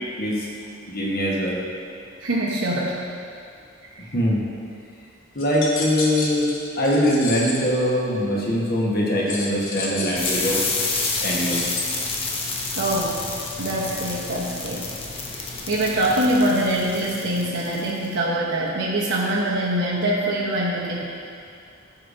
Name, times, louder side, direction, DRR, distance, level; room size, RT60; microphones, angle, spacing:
voice 1, 0.9-1.6 4.1-4.4 5.3-6.5 6.8-10.7 11.2-11.6, equal, 45° left, -4 dB, 1.3 m, -22 dB
voice 2, 2.2-3.1 3.9-4.0 12.8-13.3 13.6-14.8 15.7-21.0, right 1 dB, 75° right, -7 dB, 0.9 m, -24 dB
sound 1, 5.4-7.7 9.3-11.8, left 3 dB, 80° left, 1.1 m, -31 dB
sound 2, 10.2-18.1, left 3 dB, 30° left, 0.6 m, -29 dB
13.5 x 5.0 x 2.6 m, 2.3 s
head